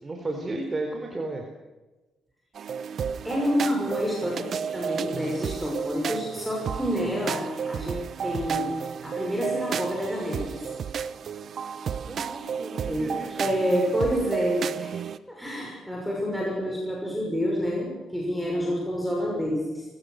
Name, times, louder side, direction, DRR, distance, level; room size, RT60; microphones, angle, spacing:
voice 1, 0.0-1.5 12.1-13.5, right 2 dB, 25° right, 2 dB, 4.0 m, -34 dB
sound 1, 2.6-15.2, right 7 dB, 55° right, 1.1 m, -32 dB
voice 2, 3.2-10.7 12.9-15.0 15.3-19.8, equal, ahead, -2 dB, 6.1 m, -28 dB
24.5 x 17.0 x 6.6 m, 1.1 s
cardioid pair, 90°, 0 cm